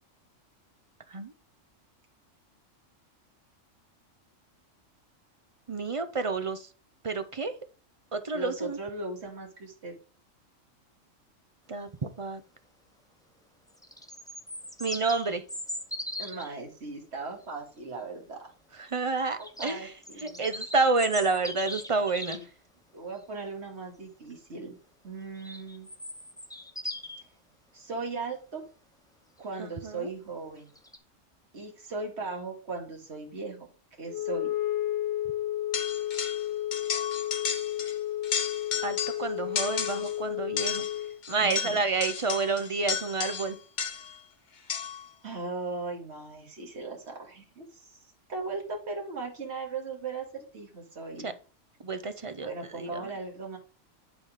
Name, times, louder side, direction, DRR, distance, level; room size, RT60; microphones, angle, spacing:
voice 1, 5.7-6.7 7.0-7.5 8.1-8.8 11.7-12.4 14.8-15.4 18.8-19.9 20.2-22.4 29.8-30.1 38.8-40.8 41.3-43.6 51.2-51.3 51.8-52.5 52.8-53.1, right 3 dB, 35° right, 9 dB, 0.5 m, -29 dB
voice 2, 8.3-9.9 16.2-18.5 19.4-20.5 22.2-22.4 22.9-24.8 25.0-25.9 27.7-28.6 29.4-30.7 31.5-33.7 34.0-34.5 41.4-41.8 45.2-47.9 48.3-51.3 52.4-53.6, right 3 dB, 55° right, 1 dB, 2.3 m, -38 dB
sound 1, 13.7-16.6 19.4-22.4 25.4-27.2 30.8-31.0, left 1 dB, 5° left, 0.7 m, -39 dB
Wind instrument woodwind instrument, 34.1-41.2, left 13 dB, 70° left, 1.0 m, -32 dB
sound 2, 35.7-36.5 36.7-38.0 38.2-39.2 39.6-40.2 40.6-44.2 44.7-45.1, left 6 dB, 40° left, 0.9 m, -33 dB
10.5 x 4.2 x 4.9 m, 0.37 s
omnidirectional pair, 1.3 m